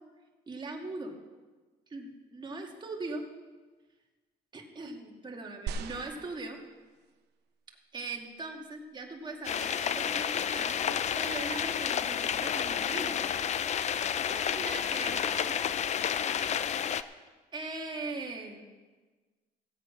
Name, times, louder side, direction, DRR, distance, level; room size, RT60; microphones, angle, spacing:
voice 1, 0.5-1.1 1.9-3.2 4.5-6.6 7.9-13.2 14.3-15.6 17.5-18.6, right 2 dB, 25° right, 1 dB, 2.2 m, -40 dB
sound 1, 5.7-7.2 7.9-8.0, right 6 dB, 80° right, 0.9 m, -40 dB
Rain in the Attic - Reprocessed, 9.4-17.0, left 8 dB, 40° left, 0.5 m, -30 dB
17.0 x 8.2 x 5.9 m, 1.3 s
cardioid pair, 110°, 17 cm